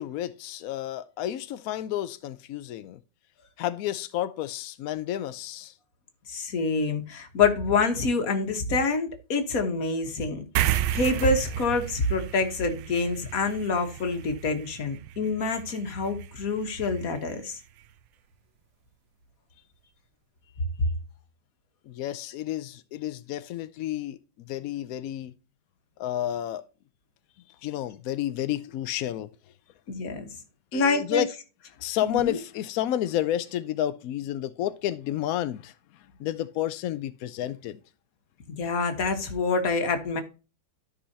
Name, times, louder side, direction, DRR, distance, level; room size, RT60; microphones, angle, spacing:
voice 1, 0.0-3.0 3.6-5.7 21.9-25.3 26.0-26.6 27.6-29.3 30.7-31.3 31.8-35.7 36.2-37.8, left 12 dB, 80° left, 0.8 m, -31 dB
voice 2, 6.3-10.4 10.9-17.6 29.9-30.3 30.7-31.2 32.0-32.4 38.5-40.2, left 3 dB, 50° left, 1.6 m, -26 dB
sound 1, 10.6-17.3, right 12 dB, 75° right, 1.3 m, -33 dB
13.0 x 5.5 x 2.7 m
omnidirectional pair, 2.0 m